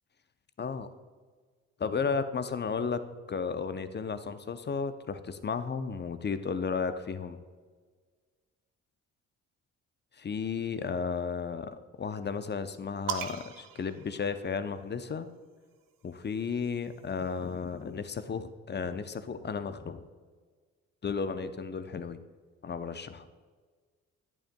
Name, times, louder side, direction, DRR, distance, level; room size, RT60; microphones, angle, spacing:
voice 1, 0.6-0.9 1.8-3.0 3.3-7.4 10.2-15.3 16.0-20.0 21.0-22.2 22.6-23.3, left 5 dB, 30° left, 11 dB, 0.6 m, -33 dB
sound 1, 13.1-14.9 16.0-17.6, right 9 dB, 60° right, 0.7 m, -41 dB
10.5 x 8.6 x 2.2 m, 1.5 s
hypercardioid pair, 45°, 37 cm